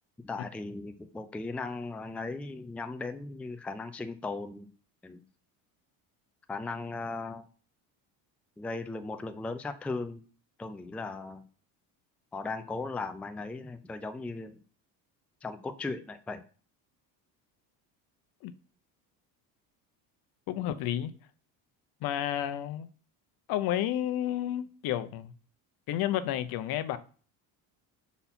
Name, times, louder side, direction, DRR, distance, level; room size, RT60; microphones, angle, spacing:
voice 1, 0.2-4.7 5.0-5.2 6.5-7.5 8.6-10.2 10.6-11.4 12.3-14.6 15.4-16.4, left 3 dB, 5° left, 0.4 m, -37 dB
voice 2, 20.5-21.1 22.0-22.9 23.5-25.3 25.9-27.0, left 11 dB, 60° left, 0.8 m, -31 dB
6.9 x 4.2 x 4.2 m
cardioid pair, 125°, 40 cm